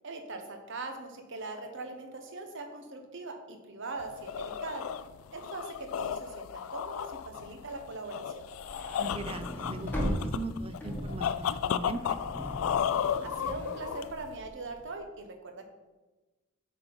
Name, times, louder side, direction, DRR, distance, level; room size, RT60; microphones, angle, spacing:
voice 1, 0.0-4.8 5.3-8.5 13.2-15.6, right 3 dB, 65° right, 5 dB, 1.2 m, -41 dB
sound 1, 4.0-14.4, left 8 dB, 80° left, 0.3 m, -34 dB
sound 2, 8.5-14.8, equal, 10° left, 1.2 m, -38 dB
voice 2, 9.0-12.5, right 2 dB, 30° right, 11 dB, 0.5 m, -39 dB
8.4 x 4.4 x 5.3 m, 1.2 s
head